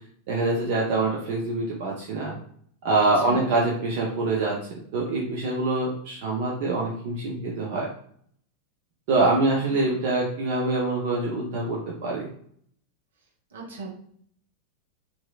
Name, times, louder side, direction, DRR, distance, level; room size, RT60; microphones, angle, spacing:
voice 1, 0.3-2.3 2.8-4.6 4.9-7.9 9.1-12.3, right 2 dB, 50° right, -3 dB, 0.6 m, -25 dB
voice 2, 3.0-3.4 13.5-13.9, right 3 dB, 70° right, -2 dB, 0.9 m, -37 dB
2.9 x 2.6 x 2.3 m, 0.62 s
figure-of-eight pair, 90°, 0 cm